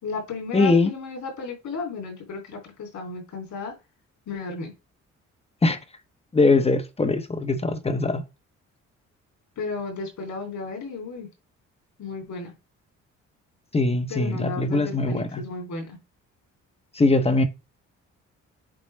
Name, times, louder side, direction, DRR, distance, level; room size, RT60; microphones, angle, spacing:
voice 1, 0.0-3.7 4.3-4.7 9.6-11.3 12.0-12.5 14.1-16.0, left 3 dB, 70° left, 3.1 m, -34 dB
voice 2, 0.5-0.9 5.6-5.8 6.3-8.2 13.7-15.4 17.0-17.4, left 3 dB, 20° left, 0.9 m, -21 dB
8.6 x 4.1 x 3.3 m
cardioid pair, 90°, 30 cm